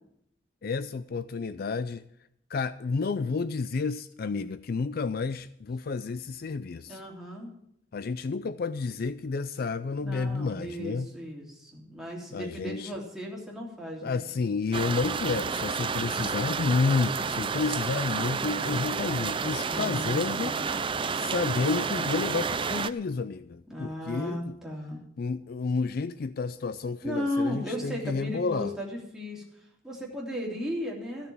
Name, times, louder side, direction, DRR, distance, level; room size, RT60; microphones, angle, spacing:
voice 1, 0.6-2.0 2.5-7.0 7.9-11.1 12.3-12.9 14.0-20.5 21.1-24.6 25.2-28.7, left 4 dB, 50° left, 14 dB, 0.4 m, -30 dB
voice 2, 6.9-7.5 10.0-14.3 19.6-20.7 23.7-25.0 27.0-31.3, equal, 5° right, -3 dB, 3.1 m, -36 dB
sound 1, 14.7-22.9, right 5 dB, 25° right, 0.4 m, -30 dB
14.5 x 6.8 x 8.6 m, 0.74 s
head